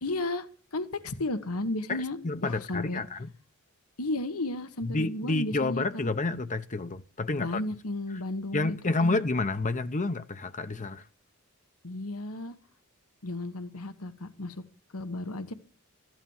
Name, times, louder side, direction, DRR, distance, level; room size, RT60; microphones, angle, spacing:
voice 1, 0.0-3.0 4.0-6.1 7.3-9.2 11.8-12.5 13.2-14.6 14.9-15.5, left 2 dB, 80° left, 1.4 m, -34 dB
voice 2, 1.9-3.3 4.8-7.6 8.5-11.1, left 3 dB, 35° left, 0.8 m, -29 dB
14.5 x 12.0 x 7.3 m
head